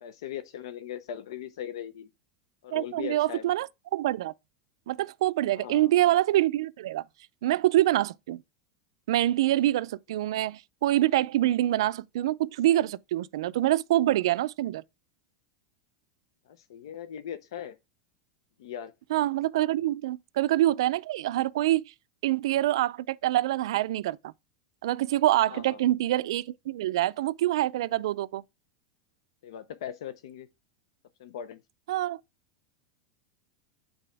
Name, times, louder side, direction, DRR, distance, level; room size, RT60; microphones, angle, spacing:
voice 1, 0.0-2.1 2.6-3.5 5.5-5.9 16.5-17.8 18.6-18.9 25.5-25.8 29.4-30.5 31.2-31.6, left 10 dB, 80° left, 0.8 m, -39 dB
voice 2, 2.7-4.3 4.9-7.0 7.4-8.4 9.1-14.8 19.1-21.8 22.2-24.3 24.8-28.4 31.9-32.2, right 14 dB, 75° right, 0.4 m, -25 dB
8.8 x 4.2 x 3.4 m
supercardioid pair, 175°, 3 cm